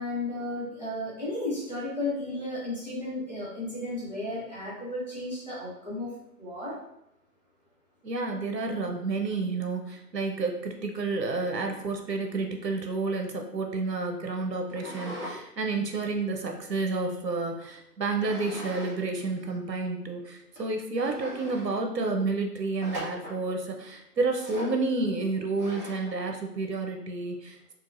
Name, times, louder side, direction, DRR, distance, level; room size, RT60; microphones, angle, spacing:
voice 1, 0.0-6.1 6.4-6.8, left 2 dB, 25° left, -10 dB, 0.9 m, -33 dB
voice 2, 8.0-27.7, right 3 dB, 90° right, 3 dB, 0.8 m, -30 dB
sound 1, 14.7-15.4 15.8-17.2 18.2-19.0 19.3-19.4 20.0-20.1 20.6-20.7 21.0-21.7 22.8-23.4 24.4-24.8 25.6-26.1, equal, 30° right, 0.9 m, -40 dB
3.9 x 2.3 x 2.5 m, 0.80 s
figure-of-eight pair, 170°, 48 cm